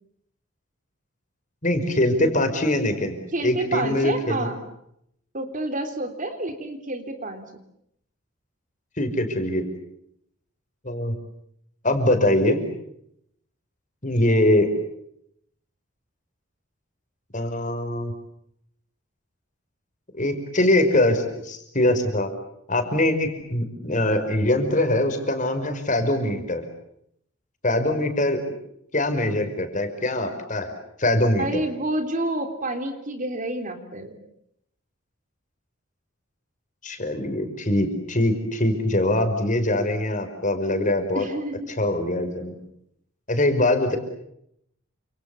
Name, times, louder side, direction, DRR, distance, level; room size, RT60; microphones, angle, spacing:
voice 1, 1.6-4.5 9.0-9.6 10.8-11.1 11.8-12.6 14.0-14.7 17.3-18.1 20.1-22.3 22.7-26.6 27.6-28.4 28.9-30.7 31.0-31.6 36.8-41.3 41.8-42.5 43.3-44.0, left 1 dB, 40° left, 6 dB, 5.3 m, -23 dB
voice 2, 3.3-4.6 5.3-7.4 31.4-34.1 41.1-41.7, right 1 dB, 40° right, 7 dB, 3.5 m, -29 dB
29.5 x 27.5 x 7.1 m, 0.75 s
head